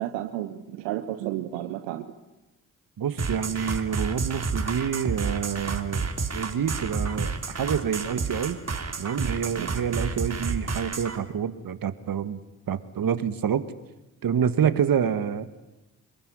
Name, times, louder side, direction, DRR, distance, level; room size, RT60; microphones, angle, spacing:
voice 1, 0.0-2.1 9.6-9.7, right 13 dB, 80° right, 9 dB, 1.3 m, -32 dB
voice 2, 3.0-8.6 9.0-12.4 12.7-13.6 14.2-15.5, right 8 dB, 55° right, 13 dB, 2.0 m, -27 dB
sound 1, 3.2-11.2, right 4 dB, 35° right, 3.4 m, -30 dB
26.5 x 22.0 x 10.0 m, 1.0 s
hypercardioid pair, 40°, 42 cm